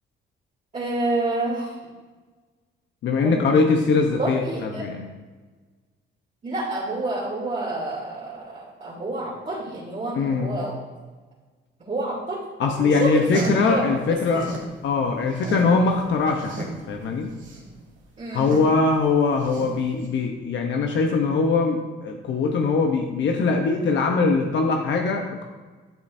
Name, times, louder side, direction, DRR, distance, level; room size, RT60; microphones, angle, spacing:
voice 1, 0.7-1.7 3.2-3.4 4.2-4.8 6.4-10.8 11.8-12.4 12.7-13.2 13.5-14.0 14.3-14.4 18.2-18.5, right 2 dB, 35° right, -6 dB, 2.8 m, -28 dB
voice 2, 3.0-5.0 10.1-10.6 12.6-14.4 14.8-17.3 18.3-25.4, left 4 dB, 70° left, 3 dB, 0.9 m, -22 dB
sound 1, 13.0-14.7 15.1-20.1, right 3 dB, 75° right, 2.4 m, -35 dB
12.0 x 7.4 x 2.7 m, 1.3 s
cardioid pair, 90°, 20 cm